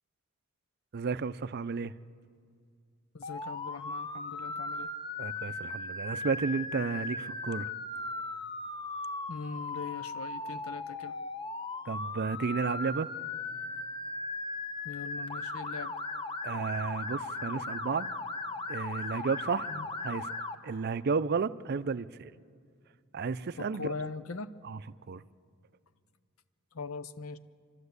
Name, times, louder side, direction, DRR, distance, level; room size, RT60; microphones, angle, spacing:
voice 1, 0.9-1.9 5.2-7.7 11.9-13.1 16.4-18.1 18.7-19.7 20.0-20.3 20.6-22.3 23.1-23.9 24.6-24.8 25.1-25.2, right 5 dB, 50° right, 0.5 m, -32 dB
voice 2, 3.1-4.9 9.3-11.1 14.8-15.9 19.7-19.9 23.6-24.5 26.7-27.4, left 4 dB, 85° left, 0.7 m, -41 dB
Motor vehicle (road) / Siren, 3.2-20.5, left 3 dB, 25° left, 1.0 m, -37 dB
28.0 x 12.5 x 8.1 m
head